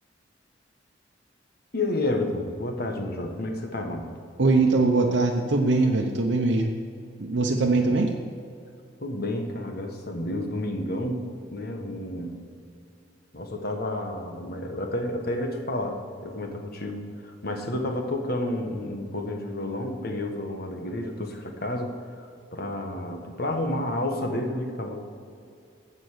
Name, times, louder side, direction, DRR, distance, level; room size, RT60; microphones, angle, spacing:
voice 1, 1.7-4.1 7.8-7.9 9.0-12.4 13.3-25.0, left 1 dB, 55° left, 3 dB, 1.5 m, -30 dB
voice 2, 4.4-6.7 7.2-8.1, right 3 dB, 75° right, 1 dB, 0.8 m, -22 dB
15.5 x 5.4 x 6.7 m, 2.5 s
head